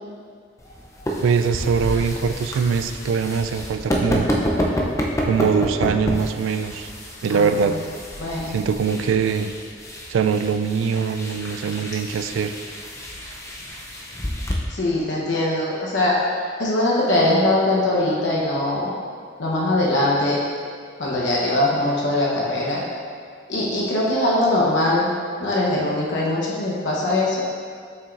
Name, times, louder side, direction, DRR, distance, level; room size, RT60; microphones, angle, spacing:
sound 1, 0.6-14.5, equal, 15° left, 0.5 m, -29 dB
voice 1, 1.2-4.3 5.3-6.9 7.2-7.8 8.5-9.5 10.1-12.5, right 6 dB, 75° right, 9 dB, 0.3 m, -22 dB
voice 2, 8.2-8.6 14.7-16.2 16.6-18.9 19.4-20.4 21.0-22.8 23.5-25.1 25.4-27.4, left 1 dB, 65° left, -5 dB, 0.9 m, -21 dB
6.8 x 5.5 x 2.5 m, 2.1 s
head